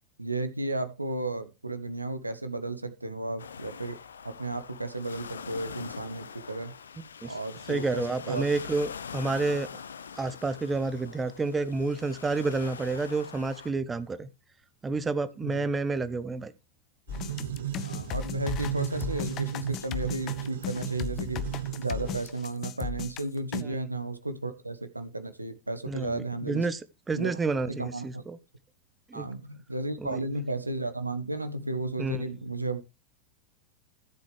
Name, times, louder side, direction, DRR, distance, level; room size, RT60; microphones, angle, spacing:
voice 1, 0.2-4.0 4.2-6.7 7.2-8.5 15.4-15.7 17.8-21.5 21.8-26.7 27.1-27.4 27.7-28.2 29.1-32.8, right 2 dB, 85° right, 1.0 m, -33 dB
sound 1, 3.4-13.7, left 6 dB, 70° left, 0.7 m, -43 dB
voice 2, 7.7-9.7 10.2-14.3 14.8-16.5 23.6-23.7 25.9-26.8 27.1-28.4 29.1-29.3 30.0-30.2 32.0-32.2, right 3 dB, 15° right, 0.9 m, -29 dB
sound 2, 17.1-23.6, left 9 dB, 35° left, 0.9 m, -37 dB
sound 3, 17.1-22.2, right 12 dB, 60° right, 1.5 m, -35 dB
14.0 x 7.7 x 3.3 m
figure-of-eight pair, 90°, 0 cm